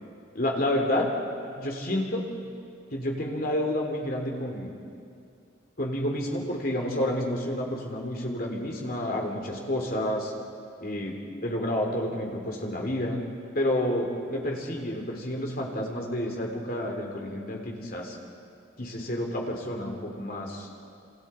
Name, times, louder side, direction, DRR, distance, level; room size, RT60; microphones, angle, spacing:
voice 1, 0.3-1.1 1.5-2.2 2.9-4.7 5.8-10.3 10.8-11.2 11.4-13.2 13.5-18.2 18.8-20.7, left 1 dB, 45° left, 0 dB, 3.3 m, -29 dB
27.5 x 27.5 x 4.5 m, 2.4 s
head